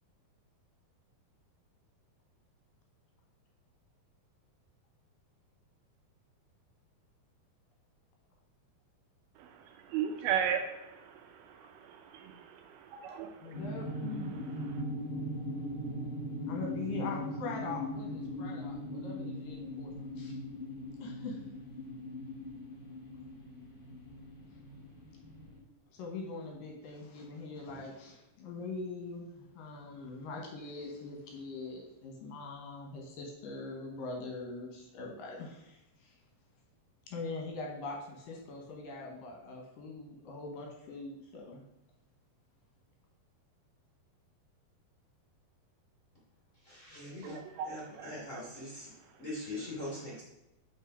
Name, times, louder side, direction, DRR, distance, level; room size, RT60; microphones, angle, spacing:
voice 1, 9.9-11.1 11.9-13.5 47.2-47.7 48.0-48.1, right 8 dB, 80° right, 5 dB, 2.3 m, -35 dB
voice 2, 13.4-14.5 16.5-20.4 21.0-21.5 25.9-36.2 37.1-41.6, left 3 dB, 70° left, -1 dB, 2.5 m, -42 dB
sound 1, 13.5-25.6, left 1 dB, 50° left, 1.3 m, -40 dB
voice 3, 46.6-47.4 47.6-48.9 49.2-50.2, left 1 dB, 30° left, -6 dB, 1.6 m, -42 dB
5.7 x 5.4 x 4.9 m, 0.93 s
omnidirectional pair, 4.6 m